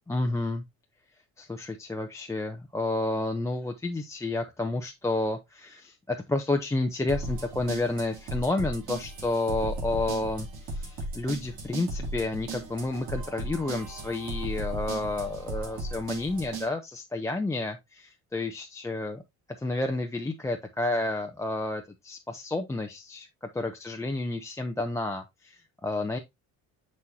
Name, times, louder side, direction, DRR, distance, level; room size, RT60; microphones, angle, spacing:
voice 1, 0.1-0.6 1.4-19.2 19.6-23.3 23.5-26.2, left 2 dB, 10° left, 0.6 m, -30 dB
sound 1, 7.1-16.7, right 2 dB, 65° right, 2.9 m, -36 dB
6.2 x 5.8 x 2.7 m
cardioid pair, 105°, 33 cm